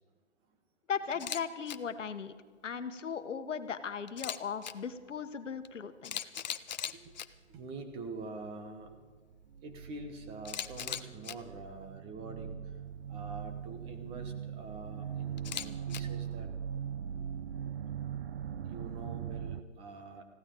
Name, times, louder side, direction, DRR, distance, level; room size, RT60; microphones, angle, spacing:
voice 1, 0.9-2.3 2.6-6.2, left 6 dB, 80° left, 10 dB, 1.3 m, -37 dB
Camera, 1.1-1.4 1.7-1.8 4.1-4.7 5.6-5.7 6.0-7.3 10.4-11.3 15.4-16.0, left 9 dB, 40° left, 0.5 m, -38 dB
voice 2, 2.7-3.1 6.4-6.6 6.9-7.1 7.5-9.0 9.6-12.6 13.1-16.5 18.6-20.2, right 3 dB, 15° right, 6 dB, 1.1 m, -46 dB
sound 1, 7.1-7.2 7.5-8.4 8.7-19.6, right 8 dB, 55° right, 0.8 m, -41 dB
20.5 x 15.5 x 3.9 m, 1.5 s
hypercardioid pair, 150°, 36 cm